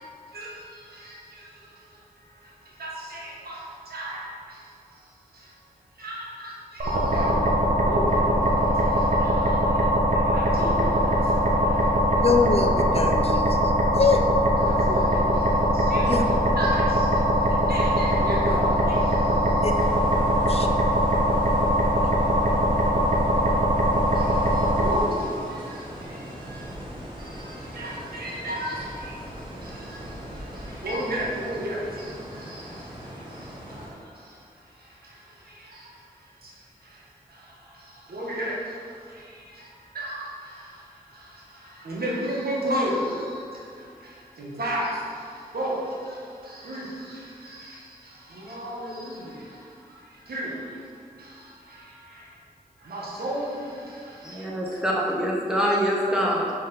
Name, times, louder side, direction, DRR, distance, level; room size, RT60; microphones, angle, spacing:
voice 1, 0.0-5.1 5.3-5.5 6.0-12.2 14.6-19.8 24.1-26.7 27.2-52.4 52.8-54.5, right 1 dB, 85° right, -5 dB, 1.4 m, -35 dB
sound 1, 6.8-25.0, equal, 60° right, 1.2 m, -21 dB
voice 2, 12.2-14.2 16.1-16.2 19.6-19.7 20.4-20.7, left 5 dB, 40° left, 4 dB, 0.5 m, -24 dB
sound 2, 19.7-33.9, equal, 30° right, 1.8 m, -40 dB
voice 3, 54.2-56.5, equal, 5° right, -4 dB, 1.3 m, -25 dB
5.5 x 5.3 x 5.4 m, 2.3 s
wide cardioid pair, 120°, 16 cm